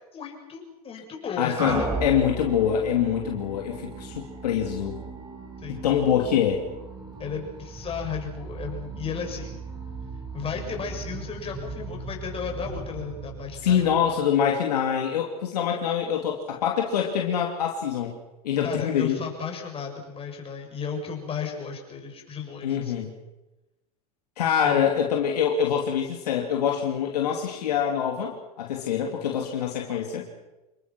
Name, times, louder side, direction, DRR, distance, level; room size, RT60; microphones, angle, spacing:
voice 1, 0.1-1.9 5.6-5.9 7.2-9.6 10.3-13.9 18.6-23.1 24.6-24.9, left 6 dB, 30° left, 2 dB, 7.1 m, -34 dB
voice 2, 1.4-5.0 5.7-6.6 13.6-18.2 18.4-19.2 22.6-23.1 24.4-30.3, left 8 dB, 80° left, 1 dB, 3.0 m, -25 dB
sound 1, 1.6-14.4, right 3 dB, 20° right, 6.7 m, -36 dB
28.0 x 21.5 x 6.2 m, 1.0 s
hypercardioid pair, 100°, 20 cm